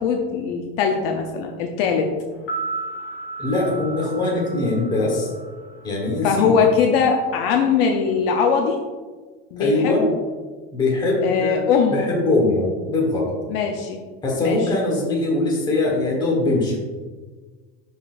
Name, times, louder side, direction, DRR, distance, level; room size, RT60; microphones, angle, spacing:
voice 1, 0.0-2.1 6.2-8.8 9.5-10.0 11.2-12.1 13.5-14.0 14.4-14.7, left 6 dB, 75° left, 2 dB, 0.7 m, -20 dB
sound 1, 2.3-6.5 6.8-6.9, right 3 dB, 40° left, 1.1 m, -34 dB
voice 2, 3.4-5.3 5.8-6.5 9.6-10.0 10.7-11.6 11.9-13.3 14.2-16.8, left 2 dB, 15° left, -3 dB, 1.3 m, -22 dB
11.0 x 4.0 x 2.5 m, 1.4 s
cardioid pair, 170°, 29 cm